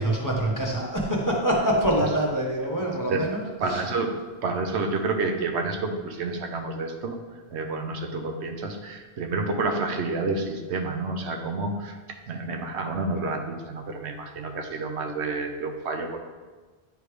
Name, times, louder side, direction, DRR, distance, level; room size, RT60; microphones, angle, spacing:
voice 1, 0.0-3.8, right 1 dB, 20° left, -3 dB, 1.1 m, -25 dB
voice 2, 3.6-16.2, right 3 dB, 85° right, 4 dB, 1.1 m, -29 dB
9.1 x 3.2 x 4.9 m, 1.3 s
omnidirectional pair, 1.1 m